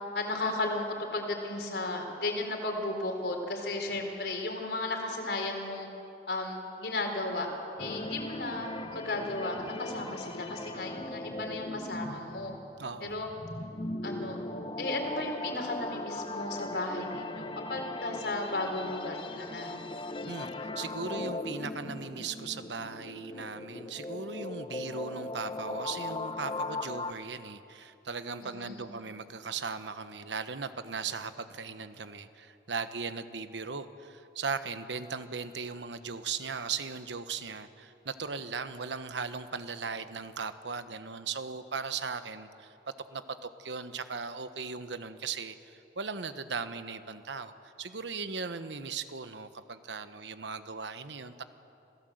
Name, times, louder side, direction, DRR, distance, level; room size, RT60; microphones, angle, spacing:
voice 1, 0.1-0.9 1.1-5.9 6.3-7.5 7.8-12.5 13.0-13.3 14.0-14.4 14.8-19.8 28.4-28.9, left 2 dB, 70° left, 2 dB, 4.0 m, -34 dB
sound 1, 7.8-27.1, left 2 dB, 30° left, 0.8 m, -39 dB
voice 2, 12.8-13.2 20.3-42.7 43.1-47.5 47.8-51.4, right 5 dB, 90° right, 11 dB, 1.1 m, -38 dB
27.5 x 17.0 x 7.9 m, 2.9 s
head